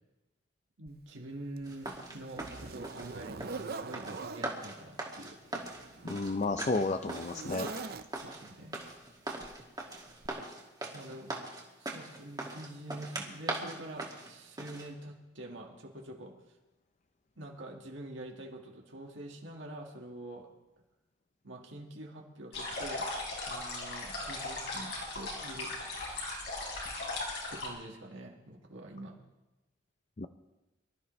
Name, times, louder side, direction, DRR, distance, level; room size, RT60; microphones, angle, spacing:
voice 1, 0.8-5.5 5.8-5.9 8.2-8.8 10.9-11.3 11.8-16.3 17.4-20.5 21.4-23.1 23.4-25.7 27.5-29.2, right 1 dB, 75° right, 0 dB, 1.8 m, -46 dB
Zipper (clothing), 0.9-1.0 1.6-4.5 5.5-8.4 9.4-9.6 10.2-10.3, right 4 dB, 50° right, 0.6 m, -43 dB
sound 1, 1.6-14.9, right 2 dB, 20° right, 2.0 m, -41 dB
voice 2, 6.0-7.7 30.2-30.3, left 3 dB, 35° left, 8 dB, 0.5 m, -32 dB
sound 2, 22.5-27.7, left 2 dB, 60° left, 4.3 m, -38 dB
24.5 x 13.0 x 3.2 m, 1.0 s
head